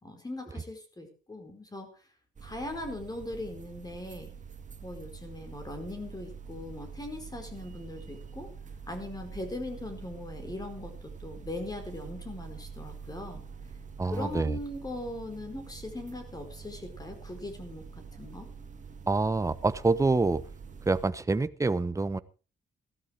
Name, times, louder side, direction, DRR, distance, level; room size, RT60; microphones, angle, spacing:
voice 1, 0.0-2.0 2.4-4.3 4.8-8.5 8.9-13.4 14.1-18.5, left 1 dB, 20° left, 6 dB, 4.7 m, -40 dB
sound 1, 2.4-21.1, right 5 dB, 40° right, 1.9 m, -45 dB
voice 2, 14.0-14.6 19.1-20.4 20.9-22.2, right 3 dB, 15° right, 14 dB, 1.0 m, -26 dB
15.5 x 12.5 x 4.7 m, 0.34 s
cardioid pair, 90°, 20 cm